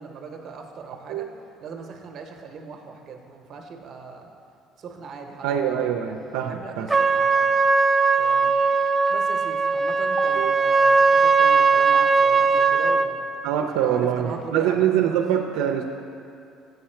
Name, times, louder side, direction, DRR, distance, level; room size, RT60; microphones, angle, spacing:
voice 1, 0.0-1.3 1.6-4.3 4.8-5.8 6.5-7.6 8.2-8.5 9.1-13.2 13.5-15.2, right 5 dB, 45° right, 4 dB, 0.8 m, -39 dB
voice 2, 5.4-6.9 10.4-10.5 13.4-15.8, right 9 dB, 90° right, 3 dB, 0.4 m, -24 dB
Trumpet, 6.9-13.1, right 4 dB, 10° right, 0.3 m, -19 dB
7.9 x 5.6 x 4.4 m, 2.5 s
cardioid pair, 110°, 0 cm